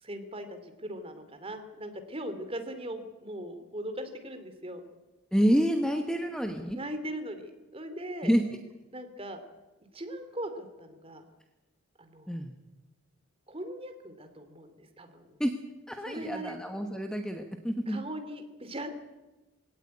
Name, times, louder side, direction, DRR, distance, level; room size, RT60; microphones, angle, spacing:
voice 1, 0.0-4.8 6.7-8.3 8.9-9.4 9.9-11.2 12.0-12.4 13.5-15.4 16.0-16.6 17.9-18.9, right 1 dB, 25° right, 7 dB, 2.7 m, -40 dB
voice 2, 5.3-6.8 8.2-8.6 12.3-12.5 15.4-15.6 15.9-18.0, equal, 5° left, 5 dB, 1.1 m, -28 dB
21.0 x 17.5 x 9.7 m, 1.1 s
head